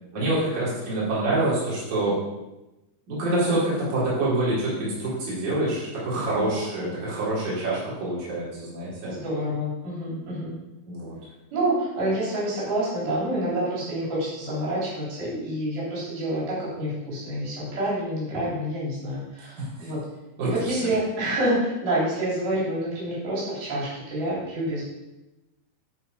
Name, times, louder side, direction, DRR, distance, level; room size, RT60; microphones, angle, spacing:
voice 1, 0.1-2.2 3.1-9.1 10.9-11.2 19.8-19.9 20.4-20.9, right 2 dB, 55° right, -9 dB, 4.8 m, -26 dB
voice 2, 6.4-6.9 9.0-10.6 11.5-20.0 20.4-24.8, right 1 dB, 85° right, -8 dB, 5.3 m, -28 dB
13.0 x 4.4 x 5.1 m, 1.0 s
omnidirectional pair, 4.2 m